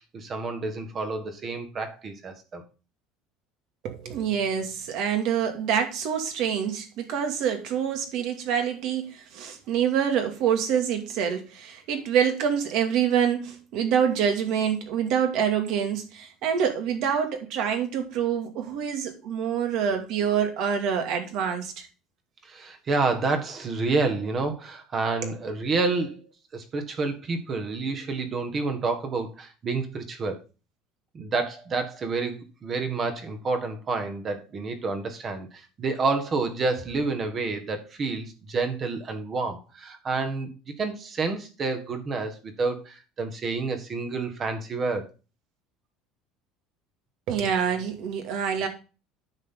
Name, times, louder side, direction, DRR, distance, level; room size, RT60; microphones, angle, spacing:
voice 1, 0.0-2.6 22.4-26.2 26.5-30.4 31.1-40.5 40.8-45.1, right 3 dB, 30° right, 1.7 m, -29 dB
voice 2, 3.8-21.9 25.2-25.3 47.3-48.7, right 8 dB, 60° right, 2.3 m, -26 dB
9.6 x 6.4 x 3.8 m
cardioid pair, 150°, 0 cm